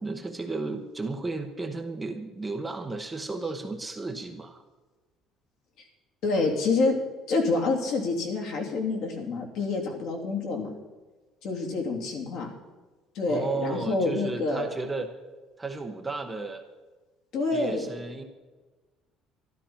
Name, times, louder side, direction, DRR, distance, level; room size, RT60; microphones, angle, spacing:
voice 1, 0.0-4.6 9.8-9.9 13.3-15.1 15.6-16.6 17.5-18.2, right 3 dB, 10° right, 5 dB, 0.8 m, -34 dB
voice 2, 6.2-6.9 7.3-10.7 11.4-12.5 13.1-14.7 17.3-17.9, left 3 dB, 55° left, 1 dB, 3.0 m, -27 dB
13.0 x 12.5 x 5.8 m, 1.2 s
cardioid pair, 175°, 0 cm